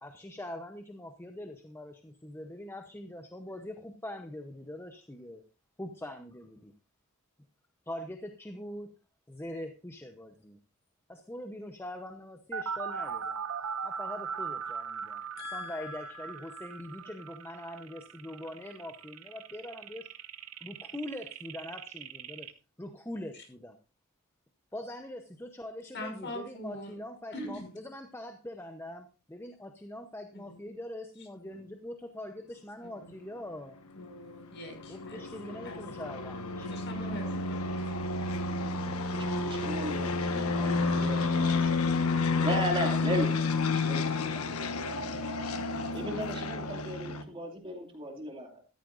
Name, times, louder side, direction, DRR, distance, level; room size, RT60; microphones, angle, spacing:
voice 1, 0.0-5.4 5.8-6.7 7.9-8.9 9.3-10.6 11.1-13.4 13.8-15.2 15.5-20.1 20.6-22.5 22.8-23.8 24.7-33.8 34.9-36.8, left 1 dB, 10° left, 5 dB, 0.8 m, -43 dB
sound 1, 12.5-22.5, right 6 dB, 80° right, 0.9 m, -39 dB
voice 2, 15.4-16.6 23.3-23.4 25.9-26.9 27.3-27.7 30.3-30.7 31.4-31.7 33.0-33.2 34.0-35.8 36.6-37.7, left 2 dB, 55° left, 4 dB, 6.0 m, -43 dB
sound 2, 33.9-47.2, left 3 dB, 85° left, 1.4 m, -30 dB
voice 3, 39.2-41.9 42.4-44.6 45.9-48.6, equal, 25° right, 2 dB, 2.5 m, -36 dB
14.5 x 13.5 x 2.6 m, 0.33 s
head